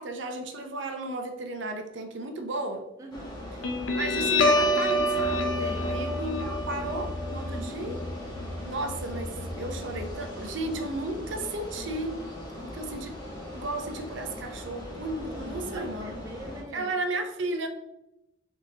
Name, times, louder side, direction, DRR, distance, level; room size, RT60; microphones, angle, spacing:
voice 1, 0.0-2.8 4.0-8.0 8.6-12.2 12.6-13.2 13.5-16.1 16.7-17.7, right 2 dB, 70° right, 0.6 m, -34 dB
voice 2, 3.0-3.4 5.6-6.0 7.6-7.9 15.2-17.0, right 1 dB, 15° right, 0.3 m, -43 dB
sound 1, 3.1-16.6, left 1 dB, 20° left, 1.1 m, -40 dB
Guitar, 3.6-10.6, left 1 dB, 75° left, 0.6 m, -28 dB
4.1 x 3.7 x 2.7 m
head